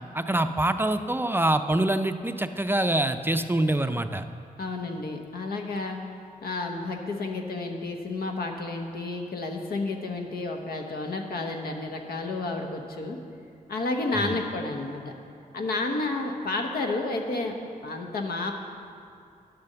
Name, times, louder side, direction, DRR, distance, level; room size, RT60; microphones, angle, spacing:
voice 1, 0.1-4.3 14.1-14.4, right 1 dB, 15° right, 8 dB, 0.4 m, -25 dB
voice 2, 4.6-6.0 6.4-13.2 13.7-15.1 15.5-17.5 17.8-18.5, left 3 dB, 85° left, 3 dB, 1.2 m, -31 dB
10.5 x 6.9 x 6.8 m, 2.4 s
cardioid pair, 85°, 15 cm